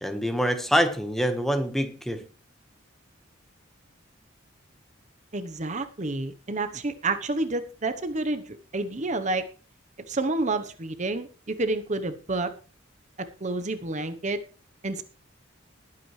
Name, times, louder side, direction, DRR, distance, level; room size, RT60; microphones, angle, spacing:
voice 1, 0.0-2.3, equal, ahead, 1.3 m, -25 dB
voice 2, 5.3-9.4 10.1-12.5 13.2-14.4 14.8-15.0, right 2 dB, 35° right, 0.9 m, -29 dB
20.5 x 8.5 x 3.2 m
head